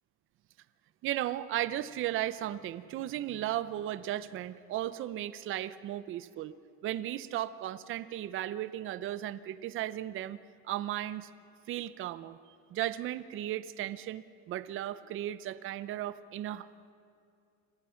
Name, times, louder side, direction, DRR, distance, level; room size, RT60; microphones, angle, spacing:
voice 1, 1.0-6.5 6.8-10.4 10.6-11.3 11.7-12.4 12.7-16.7, right 13 dB, 40° right, 15 dB, 0.7 m, -35 dB
29.0 x 22.0 x 5.8 m, 2.5 s
cardioid pair, 155°, 33 cm